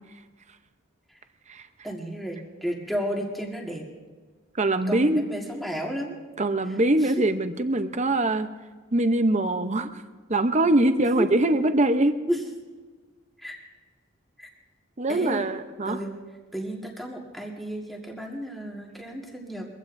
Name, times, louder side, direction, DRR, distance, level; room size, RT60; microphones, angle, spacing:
voice 1, 1.8-3.9 4.9-6.1 6.6-7.1 11.0-11.3 12.3-12.4 13.4-13.6 14.4-14.5 15.1-15.5 15.8-16.1 16.5-19.7, equal, ahead, -1 dB, 1.7 m, -32 dB
voice 2, 4.6-5.2 6.4-8.5 8.9-9.9 10.3-12.2 15.0-16.0, right 2 dB, 35° right, 9 dB, 0.7 m, -23 dB
23.0 x 16.0 x 2.6 m, 1.4 s
head